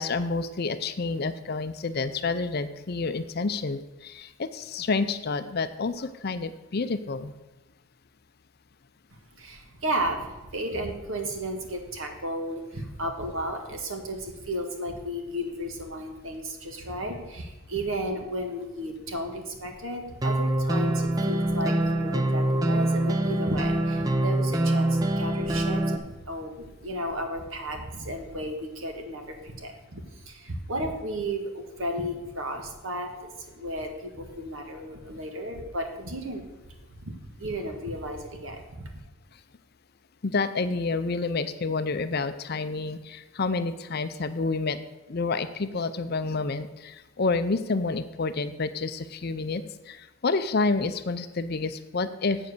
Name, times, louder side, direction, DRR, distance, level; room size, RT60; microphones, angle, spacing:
voice 1, 0.0-7.3 40.2-44.8 45.1-52.4, left 3 dB, 45° left, 11 dB, 0.5 m, -29 dB
voice 2, 9.4-38.9, right 1 dB, 65° right, 4 dB, 1.6 m, -34 dB
sound 1, 20.2-26.0, right 1 dB, 15° right, 0.6 m, -25 dB
7.9 x 7.5 x 6.6 m, 1.1 s
head